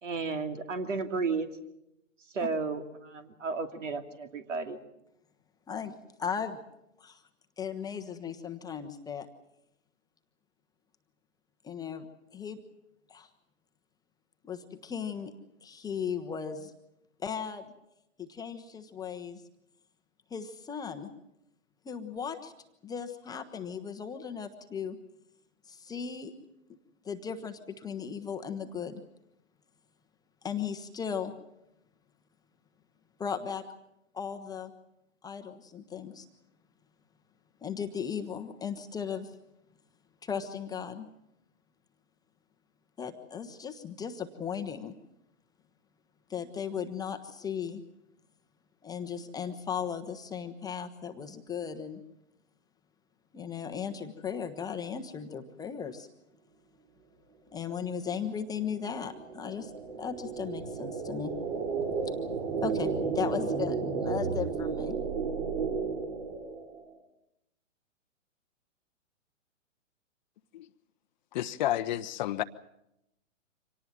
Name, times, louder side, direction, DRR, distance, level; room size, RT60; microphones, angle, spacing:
voice 1, 0.0-1.5 2.3-4.8, right 4 dB, 70° right, 7 dB, 2.7 m, -33 dB
voice 2, 5.7-6.6 7.0-7.2 7.6-9.3 11.6-12.1 12.3-12.6 13.1-13.3 14.5-15.3 15.6-16.7 17.2-17.7 18.2-19.4 20.3-21.1 21.8-22.5 22.8-25.0 25.7-26.3 27.0-29.0 30.4-31.3 33.2-33.6 34.1-34.7 35.2-36.3 37.6-39.3 40.2-41.1 43.0-44.9 46.3-47.8 48.8-52.0 53.3-56.1 57.5-59.7 60.0-61.3 62.1-62.2 62.6-65.0, left 7 dB, 10° left, 6 dB, 0.9 m, -36 dB
sound 1, 58.0-66.9, right 5 dB, 50° right, 4.6 m, -33 dB
voice 3, 71.3-72.4, left 13 dB, 35° left, 13 dB, 0.7 m, -30 dB
25.5 x 18.5 x 7.4 m, 0.84 s
hypercardioid pair, 125°, 39 cm